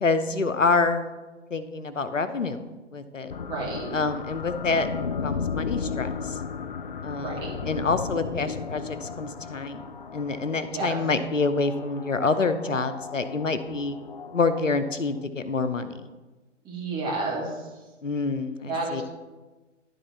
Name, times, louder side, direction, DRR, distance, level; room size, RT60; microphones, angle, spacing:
voice 1, 0.0-1.1 1.5-2.6 2.9-3.3 3.9-4.9 5.2-6.4 7.0-9.8 10.1-14.0 14.3-16.0 18.0-19.0, left 4 dB, 90° left, 11 dB, 0.7 m, -27 dB
sound 1, 3.3-15.3, left 6 dB, 45° left, 0.4 m, -35 dB
voice 2, 3.4-4.0 7.1-7.7 10.7-11.0 16.6-17.8 18.7-19.0, right 3 dB, 10° right, -3 dB, 1.4 m, -31 dB
11.5 x 3.8 x 4.1 m, 1.2 s
figure-of-eight pair, 130°, 37 cm